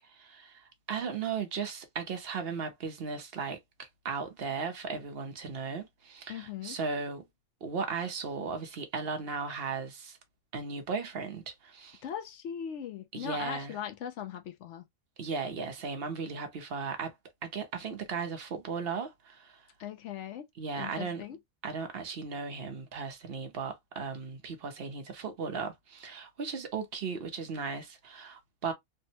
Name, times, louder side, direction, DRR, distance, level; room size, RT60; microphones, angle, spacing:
voice 1, 0.1-7.2 7.6-10.2 10.5-12.0 13.1-13.8 15.2-17.1 17.4-19.6 20.6-21.2 21.6-28.7, right 5 dB, 55° right, 0.8 m, -36 dB
voice 2, 6.3-6.8 12.0-14.8 19.8-20.5 20.8-21.4, left 9 dB, 65° left, 0.8 m, -39 dB
3.4 x 2.1 x 2.7 m
omnidirectional pair, 1.4 m